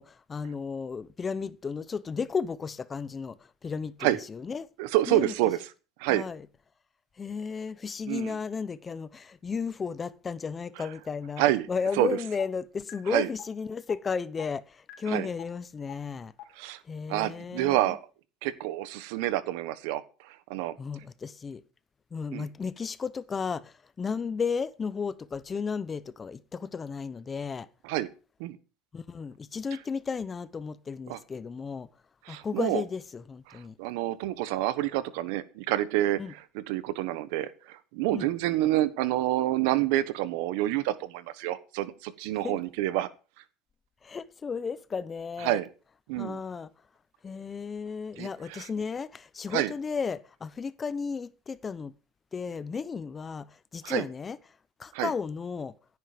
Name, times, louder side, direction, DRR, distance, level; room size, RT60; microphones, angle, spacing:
voice 1, 0.0-4.7 5.1-5.3 6.1-6.5 7.2-16.3 16.8-18.0 20.8-21.6 22.1-27.7 28.9-31.9 32.3-33.8 36.2-36.3 38.1-38.3 42.4-42.6 44.0-45.6 46.1-46.7 47.2-51.9 52.3-54.4 54.8-55.7, left 5 dB, 20° left, 0.7 m, -34 dB
voice 2, 4.8-5.6 6.0-6.3 8.1-8.3 11.4-11.7 12.0-12.1 13.1-13.3 15.1-15.3 16.6-16.8 17.1-18.0 18.4-20.7 22.3-22.4 27.8-28.1 28.4-28.6 31.1-31.2 32.3-32.8 33.5-36.2 36.5-43.1 45.4-45.7 46.1-46.4 48.2-48.7 49.5-49.7 53.8-54.0 54.9-55.1, right 15 dB, 75° right, 1.3 m, -28 dB
sound 1, 11.9-12.0 12.4-12.5 12.9-13.0 13.4-13.5 13.9-14.0 14.4-14.5 14.9-15.0 15.4-15.5 15.9-16.0 16.4-16.5, left 15 dB, 55° left, 3.0 m, -43 dB
16.0 x 9.5 x 5.1 m
cardioid pair, 145°, 0 cm